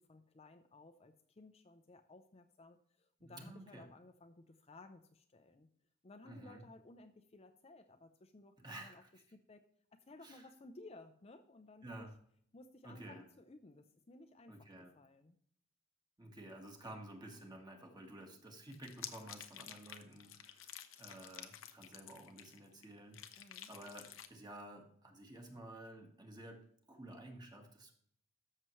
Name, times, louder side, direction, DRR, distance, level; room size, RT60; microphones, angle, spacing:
voice 1, 0.0-5.7 6.0-9.0 9.3-9.6 9.9-12.1 12.5-15.4 23.4-23.7, left 2 dB, 30° left, 6 dB, 0.6 m, -58 dB
voice 2, 3.2-3.9 6.2-6.6 8.6-9.1 10.2-10.4 11.8-12.1 12.8-13.2 14.5-14.9 16.2-27.9, right 1 dB, 20° right, 2 dB, 1.6 m, -52 dB
sound 1, 18.7-22.8 23.1-24.3, left 10 dB, 75° left, 0.8 m, -51 dB
13.5 x 6.7 x 3.1 m, 0.64 s
head